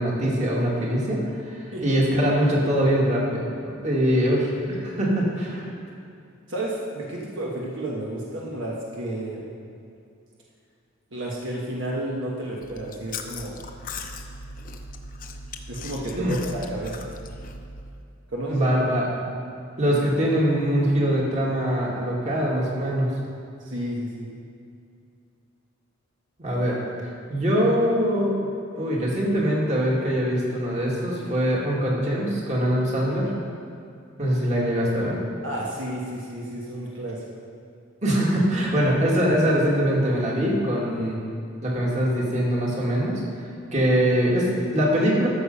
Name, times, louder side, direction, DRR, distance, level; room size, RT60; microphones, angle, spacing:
voice 1, 0.0-5.7 16.2-16.3 18.5-19.1 19.8-23.1 26.4-26.8 27.3-28.3 28.8-33.3 34.2-35.2 38.0-41.2 41.6-43.2 43.7-45.3, equal, 35° right, -4 dB, 2.2 m, -23 dB
voice 2, 6.5-9.5 11.1-13.6 15.7-17.1 18.3-18.7 23.6-24.3 35.4-37.2, right 1 dB, 65° right, -4 dB, 1.4 m, -31 dB
Chewing mastication, 12.6-17.9, left 3 dB, 45° left, 0.7 m, -38 dB
13.5 x 6.7 x 5.5 m, 2.5 s
head